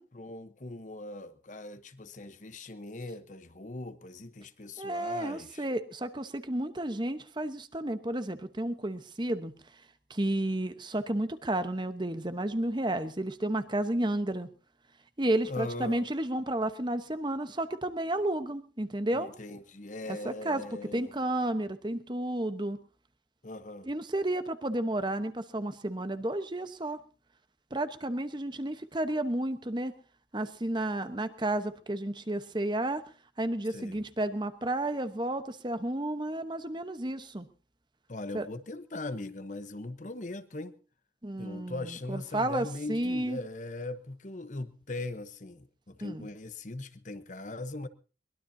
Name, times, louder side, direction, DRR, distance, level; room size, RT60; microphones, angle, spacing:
voice 1, 0.1-5.7 15.5-16.1 19.1-21.1 23.4-23.9 33.7-34.0 38.1-40.8 41.4-47.9, left 2 dB, 45° left, 0.9 m, -40 dB
voice 2, 4.8-9.5 10.1-14.5 15.2-19.3 20.1-20.6 20.9-22.8 23.8-27.0 27.7-29.9 30.3-33.0 33.4-37.5 38.3-38.5 41.2-43.4 46.0-46.3, right 1 dB, 25° right, 1.0 m, -32 dB
22.5 x 20.5 x 2.7 m
head